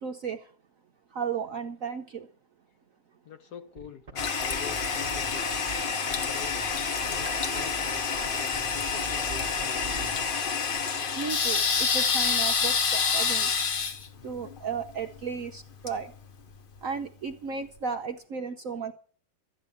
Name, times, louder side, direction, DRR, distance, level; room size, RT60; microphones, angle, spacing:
voice 1, 0.0-0.4 1.1-2.3 11.1-13.5 14.2-16.1 16.8-18.9, right 6 dB, 55° right, 0.9 m, -34 dB
voice 2, 3.2-5.4 6.1-6.7 7.1-10.0, left 6 dB, 60° left, 1.2 m, -45 dB
sound 1, 3.8-10.4, right 4 dB, 30° right, 0.9 m, -42 dB
Toilet flush, 4.2-16.8, left 5 dB, 85° left, 0.4 m, -28 dB
13.0 x 9.7 x 7.2 m
omnidirectional pair, 2.2 m